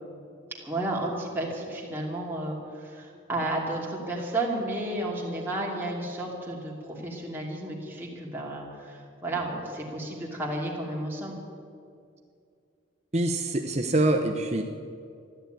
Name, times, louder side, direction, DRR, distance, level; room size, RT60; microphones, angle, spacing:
voice 1, 0.6-11.4, right 1 dB, 10° right, -3 dB, 2.7 m, -32 dB
voice 2, 13.1-14.6, right 2 dB, 30° right, 4 dB, 0.8 m, -25 dB
14.0 x 11.5 x 9.1 m, 2.4 s
head